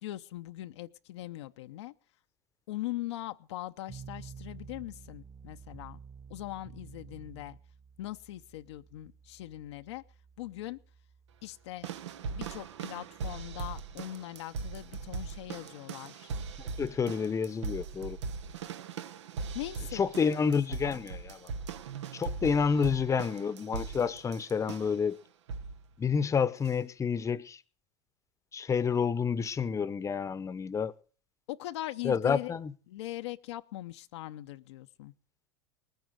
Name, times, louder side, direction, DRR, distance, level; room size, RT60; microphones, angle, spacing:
voice 1, 0.0-1.9 2.7-6.0 6.3-7.6 8.0-10.0 10.4-10.8 11.4-11.9 12.2-16.3 19.5-21.0 31.5-32.6 32.9-35.1, left 15 dB, 75° left, 0.7 m, -41 dB
sound 1, 3.9-15.0, right 6 dB, 25° right, 1.1 m, -52 dB
sound 2, 11.8-25.1 25.5-25.9 26.6-26.7, right 5 dB, 85° right, 0.9 m, -40 dB
voice 2, 16.6-18.2 19.9-21.5 22.1-25.2 26.0-27.6 28.5-30.9 32.0-32.7, left 6 dB, 20° left, 0.8 m, -29 dB
19.0 x 9.2 x 6.4 m
hypercardioid pair, 100°, 14 cm